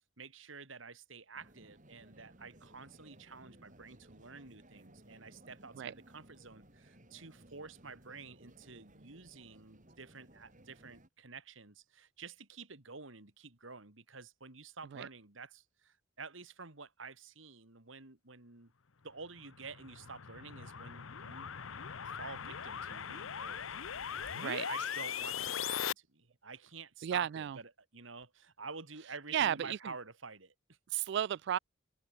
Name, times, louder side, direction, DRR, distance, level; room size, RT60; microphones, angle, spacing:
voice 1, 0.2-18.7 19.0-21.5 22.0-23.7 24.4-30.8, right 4 dB, 75° right, 2.6 m, -50 dB
sound 1, 1.3-11.1, right 1 dB, 40° right, 6.5 m, -60 dB
sound 2, 19.4-25.9, left 8 dB, 85° left, 1.0 m, -40 dB
voice 2, 24.4-24.7 27.0-27.6 29.3-29.8 30.9-31.6, right 10 dB, 55° right, 0.3 m, -33 dB
open air
head